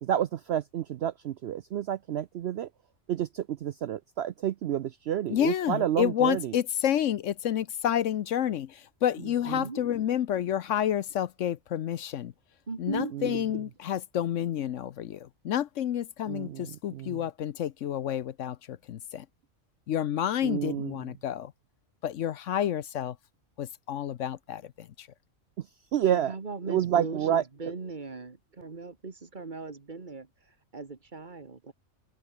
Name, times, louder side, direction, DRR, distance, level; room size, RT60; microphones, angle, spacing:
voice 1, 0.0-2.7 3.1-6.5 9.5-9.6 13.1-13.4 16.3-17.2 20.4-21.0 25.6-26.3 26.7-27.4, right 10 dB, 60° right, 0.7 m, -29 dB
voice 2, 5.3-12.3 12.8-19.3 19.9-21.5 22.0-23.2 23.6-25.1, left 10 dB, 65° left, 1.0 m, -29 dB
voice 3, 9.2-9.8 12.7-13.1 26.1-31.7, right 4 dB, 35° right, 1.7 m, -39 dB
open air
omnidirectional pair, 1.4 m